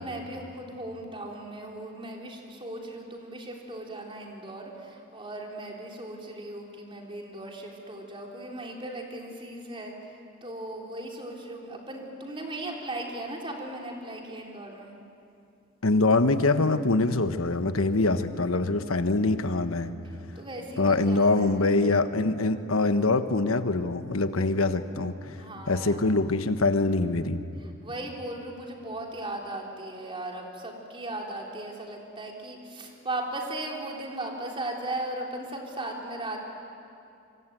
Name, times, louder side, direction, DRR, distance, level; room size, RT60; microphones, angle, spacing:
voice 1, 0.0-9.9 10.4-14.9 20.4-21.7 25.4-26.3 27.6-36.4, right 1 dB, 25° right, 0 dB, 3.7 m, -37 dB
voice 2, 15.8-19.9 20.8-25.2 25.7-27.4, left 3 dB, 85° left, 9 dB, 1.3 m, -24 dB
25.5 x 25.0 x 9.2 m, 2.6 s
head